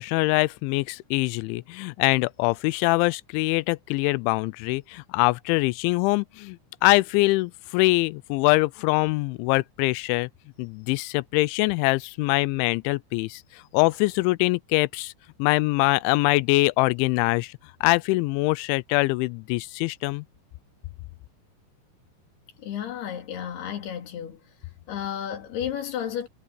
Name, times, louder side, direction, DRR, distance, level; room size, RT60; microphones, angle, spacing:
voice 1, 0.0-10.3 10.6-13.4 13.7-15.1 15.4-17.5 17.8-20.3, left 23 dB, 85° left, 2.9 m, -23 dB
voice 2, 22.6-24.4 24.9-26.3, left 9 dB, 60° left, 4.6 m, -32 dB
omnidirectional pair, 5.3 m